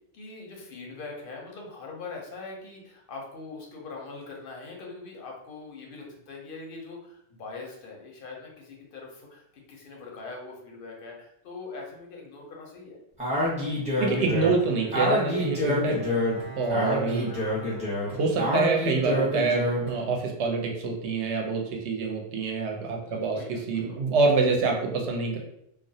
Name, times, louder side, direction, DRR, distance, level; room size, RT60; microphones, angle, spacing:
voice 1, 0.1-13.0 16.6-17.0 23.0-24.0, left 3 dB, 60° left, -1 dB, 0.6 m, -42 dB
Speech, 13.2-19.9, left 1 dB, 5° right, 0.6 m, -27 dB
voice 2, 14.0-16.0 16.6-17.3 18.1-25.4, right 4 dB, 70° right, 0 dB, 0.8 m, -26 dB
Bowed string instrument, 14.2-20.9, equal, 85° left, 0.9 m, -46 dB
2.3 x 2.0 x 2.6 m, 0.76 s
omnidirectional pair, 1.3 m